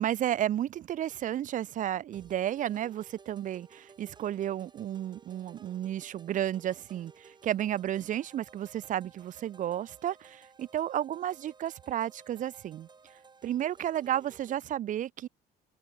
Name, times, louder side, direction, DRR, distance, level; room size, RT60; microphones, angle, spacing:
voice 1, 0.0-12.9 13.4-15.3, right 11 dB, 50° right, 0.6 m, -32 dB
sound 1, 2.1-14.6, right 5 dB, 25° right, 2.4 m, -57 dB
cardioid pair, 110°, 17 cm